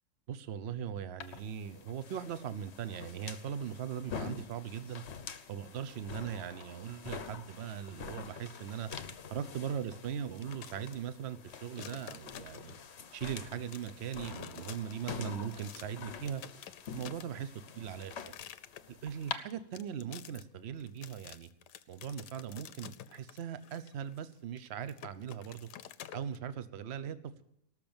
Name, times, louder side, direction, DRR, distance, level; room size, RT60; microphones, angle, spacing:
voice 1, 0.3-5.0 5.5-8.9 9.3-12.7 13.1-16.4 16.9-17.5 17.7-18.3 18.9-21.5 21.9-25.7 26.1-27.4, right 8 dB, 50° right, 13 dB, 0.9 m, -40 dB
sound 1, 1.2-19.4, left 6 dB, 45° left, 1.0 m, -46 dB
sound 2, 10.2-10.9 11.4-13.0 13.4-15.9 16.2-26.4, left 11 dB, 75° left, 1.3 m, -50 dB
18.0 x 6.8 x 8.8 m, 0.78 s
omnidirectional pair, 1.9 m